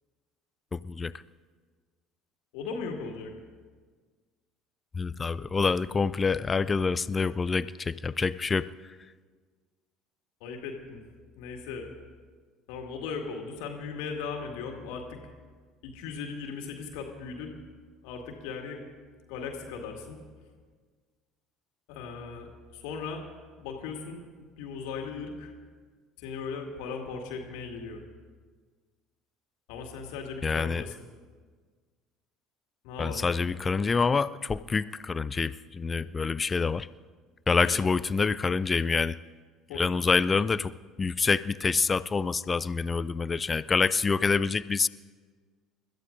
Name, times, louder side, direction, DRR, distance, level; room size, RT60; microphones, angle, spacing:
voice 1, 0.7-1.1 4.9-8.7 30.4-30.9 33.0-36.9 37.5-39.2 39.8-40.7 41.0-44.9, left 4 dB, 25° left, 16 dB, 0.4 m, -26 dB
voice 2, 2.5-3.3 10.4-11.0 11.4-11.9 12.7-15.2 15.8-17.5 18.0-18.8 19.3-20.2 21.9-23.2 23.6-25.5 26.2-28.0 29.7-30.9 32.8-33.4 37.7-37.8 39.7-40.3, left 5 dB, 60° left, 3 dB, 2.1 m, -38 dB
29.5 x 14.0 x 2.6 m, 1.5 s
figure-of-eight pair, 60°, 0 cm